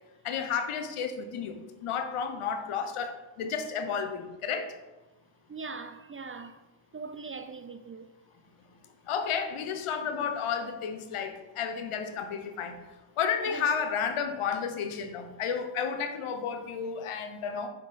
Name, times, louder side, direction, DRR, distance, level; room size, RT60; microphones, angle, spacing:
voice 1, 0.2-4.7 9.0-12.8 13.2-17.7, left 6 dB, 80° left, 0.8 m, -32 dB
voice 2, 5.5-6.6 6.9-8.1 13.5-13.7, right 4 dB, 30° right, 0.4 m, -41 dB
5.7 x 5.7 x 3.3 m
supercardioid pair, 45°, 50 cm